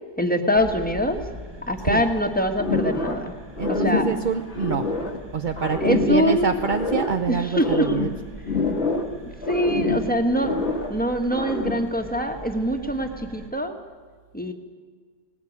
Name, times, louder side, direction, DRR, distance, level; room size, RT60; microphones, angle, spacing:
voice 1, 0.2-1.2 1.7-3.3 3.6-4.0 5.8-6.5 7.3-7.9 9.1-9.2 9.5-10.6 10.9-13.8 14.3-14.5, equal, 5° left, 5 dB, 1.7 m, -24 dB
sound 1, 0.5-13.5, equal, 15° right, 1.3 m, -42 dB
sound 2, 2.6-3.3 3.6-5.2 5.6-7.2 7.5-9.2 9.4-11.0 11.3-11.9, left 3 dB, 40° left, 1.9 m, -26 dB
voice 2, 3.6-5.0 5.3-8.1, right 5 dB, 40° right, 7 dB, 0.7 m, -26 dB
19.0 x 19.0 x 9.6 m, 1.5 s
omnidirectional pair, 1.8 m